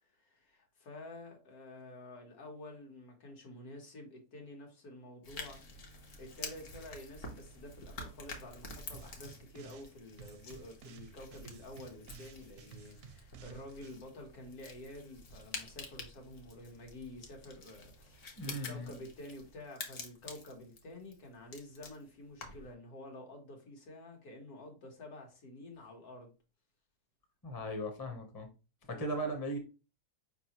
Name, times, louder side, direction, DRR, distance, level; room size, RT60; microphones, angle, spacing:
voice 1, 0.0-5.6 5.9-26.3 28.9-29.3, left 1 dB, 75° left, 1.7 m, -50 dB
sound 1, 5.2-22.7, left 3 dB, 60° left, 1.2 m, -49 dB
sound 2, 8.9-9.9 10.2-14.0, right 6 dB, 65° right, 0.7 m, -54 dB
voice 2, 18.4-18.9 27.4-28.5 28.9-29.6, right 1 dB, 20° left, 0.6 m, -37 dB
5.0 x 3.4 x 2.9 m
omnidirectional pair, 1.6 m